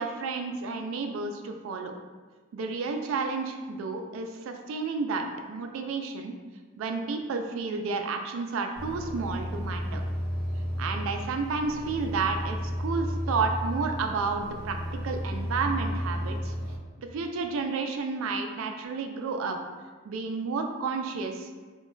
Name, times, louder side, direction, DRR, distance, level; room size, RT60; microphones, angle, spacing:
voice 1, 0.0-1.9 2.5-6.3 6.8-10.1 10.8-14.8 15.0-16.5 17.0-19.6 20.0-21.5, right 4 dB, 70° right, 4 dB, 0.3 m, -31 dB
sound 1, 8.8-16.8, equal, 10° right, 0.7 m, -33 dB
2.2 x 2.0 x 3.7 m, 1.4 s
head